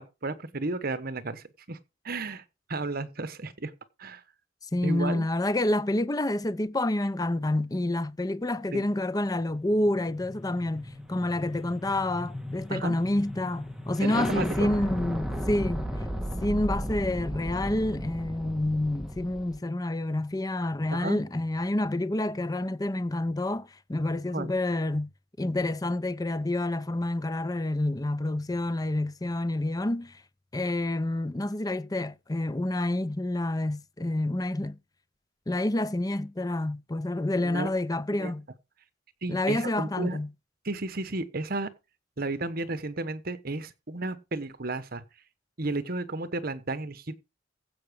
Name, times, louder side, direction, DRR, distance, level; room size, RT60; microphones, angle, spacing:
voice 1, 0.0-1.8 2.0-2.4 2.7-3.7 4.0-4.2 4.8-5.3 8.7-8.8 12.7-13.0 14.0-14.7 20.9-21.2 24.3-24.5 37.4-37.7 38.1-38.3 39.2-40.2 40.6-41.7 42.2-45.0 45.6-47.1, right 2 dB, 50° right, 1.2 m, -33 dB
voice 2, 4.7-15.9 16.4-25.1 25.4-30.2 30.5-34.8 35.5-38.5 39.3-40.3, left 1 dB, 20° left, 0.6 m, -28 dB
sound 1, 9.6-19.6, equal, 5° right, 1.7 m, -35 dB
15.5 x 5.9 x 5.2 m
head